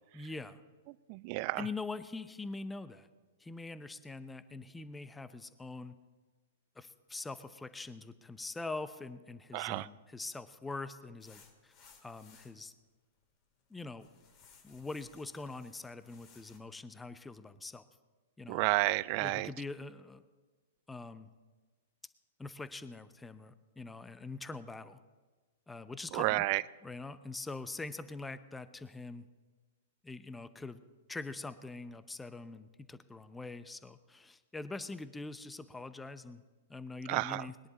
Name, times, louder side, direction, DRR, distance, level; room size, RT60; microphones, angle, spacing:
voice 1, 0.1-0.6 1.6-3.1 3.4-6.0 6.8-11.7 12.0-12.7 13.7-14.1 14.6-17.8 18.4-18.6 19.2-20.3 20.9-21.3 22.4-25.0 25.7-26.5 26.8-29.3 30.0-30.8 31.1-36.4 36.7-37.5, left 3 dB, 10° left, 13 dB, 0.6 m, -43 dB
voice 2, 1.1-1.6 9.5-9.9 18.5-19.5 26.1-26.6 37.1-37.5, right 21 dB, 45° right, 20 dB, 0.4 m, -31 dB
sound 1, 11.2-12.6 13.2-13.7 14.0-16.6, left 6 dB, 35° left, 2.1 m, -61 dB
20.5 x 10.5 x 4.1 m, 1.3 s
figure-of-eight pair, 105°, 0 cm